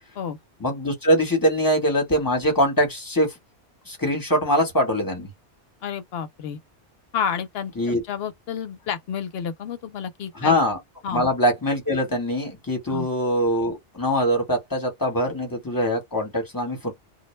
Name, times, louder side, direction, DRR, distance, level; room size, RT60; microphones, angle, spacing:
voice 1, 0.6-3.3 3.9-5.3 7.8-8.0 10.3-10.8 11.1-16.9, equal, 20° left, 1.1 m, -23 dB
voice 2, 5.8-6.6 7.1-10.6 11.0-11.2 12.9-13.1, left 7 dB, 65° left, 0.8 m, -30 dB
2.2 x 2.1 x 3.1 m
omnidirectional pair, 1.2 m